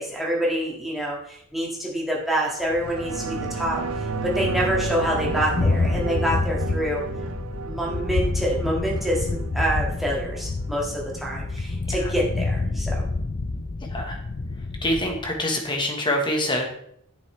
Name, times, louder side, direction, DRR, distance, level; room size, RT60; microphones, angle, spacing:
voice 1, 0.0-3.8 4.2-7.0 7.7-13.1, right 1 dB, ahead, -4 dB, 1.8 m, -26 dB
Thunder, 2.7-15.3, left 3 dB, 40° left, 0.5 m, -28 dB
sound 1, 2.8-11.8 12.2-12.3, right 5 dB, 70° right, 0.5 m, -34 dB
voice 2, 14.8-16.6, left 1 dB, 20° left, 1 dB, 1.3 m, -25 dB
8.3 x 7.0 x 3.3 m, 0.69 s
head